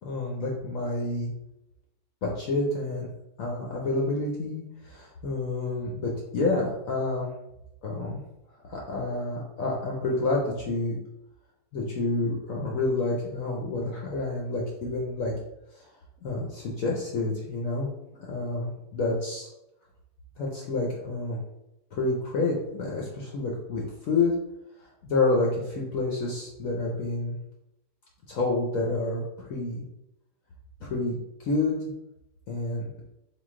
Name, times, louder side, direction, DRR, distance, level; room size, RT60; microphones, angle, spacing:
voice 1, 0.0-1.3 2.2-3.1 3.4-7.3 7.8-8.2 8.6-11.0 11.7-15.3 15.8-15.9 16.2-17.9 18.2-19.5 20.4-21.4 21.9-24.3 25.0-27.3 28.3-29.8 30.8-31.8 32.5-32.9, left 2 dB, 60° left, -2 dB, 1.0 m, -29 dB
3.8 x 2.8 x 3.6 m, 0.88 s
omnidirectional pair, 1.8 m